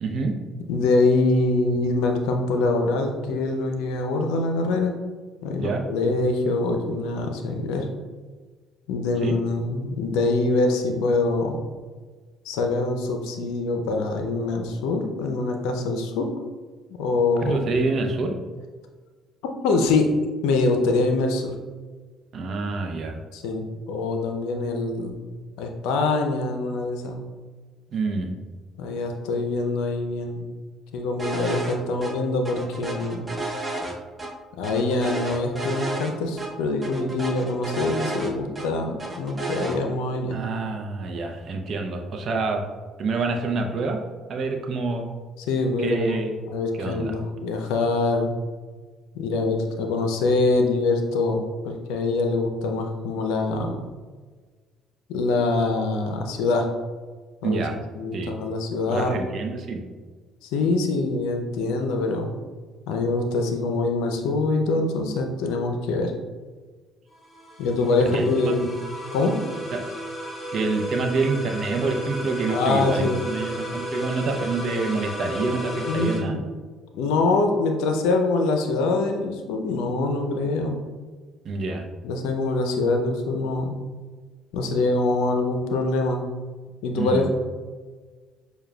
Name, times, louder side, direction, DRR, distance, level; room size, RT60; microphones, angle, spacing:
voice 1, 0.0-0.3 5.6-5.8 9.2-9.4 17.4-18.3 22.3-23.2 27.9-28.3 40.3-42.6 43.0-44.0 44.3-45.1 45.8-46.4 46.7-47.1 57.4-57.8 58.1-58.3 58.9-59.8 68.1-68.7 69.7-69.8 70.5-76.4 81.4-81.8 87.0-87.2, right 3 dB, 55° right, 4 dB, 0.6 m, -27 dB
voice 2, 0.7-4.9 5.4-7.9 8.9-11.6 12.4-16.3 17.0-17.6 19.6-20.1 20.4-21.5 23.3-25.3 25.6-27.2 28.8-30.5 30.9-33.3 34.6-40.4 45.5-46.0 46.5-48.3 49.1-53.8 55.1-56.7 57.4-57.7 58.0-59.2 60.4-62.3 62.9-66.1 67.6-68.6 69.1-69.4 72.5-73.3 75.9-76.4 76.9-80.8 82.0-83.8 84.5-86.2 86.8-87.3, left 3 dB, 80° left, 4 dB, 0.5 m, -24 dB
sound 1, 31.2-31.7 32.0-32.1 32.5-34.3 34.6-36.1 36.4-36.5 36.8-38.7 39.0-39.8, right 2 dB, 25° right, 0.7 m, -31 dB
sound 2, 67.1-76.2, equal, 30° left, 1.4 m, -34 dB
6.6 x 2.3 x 2.3 m, 1.4 s
hypercardioid pair, 60°, 0 cm